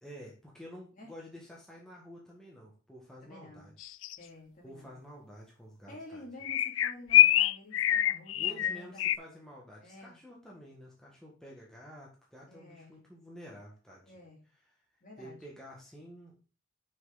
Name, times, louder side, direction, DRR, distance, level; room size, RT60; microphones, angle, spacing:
voice 1, 0.0-3.9 4.6-6.2 8.3-14.1 15.2-16.4, equal, 5° left, -4 dB, 1.6 m, -50 dB
voice 2, 3.2-3.7 4.2-5.0 5.9-9.1 9.8-10.2 12.5-13.0 14.0-14.4 15.0-15.4, left 1 dB, 40° left, -1 dB, 2.8 m, -50 dB
sound 1, 3.8-4.2 6.4-9.2, left 13 dB, 80° left, 0.3 m, -24 dB
6.2 x 5.9 x 4.0 m, 0.36 s
head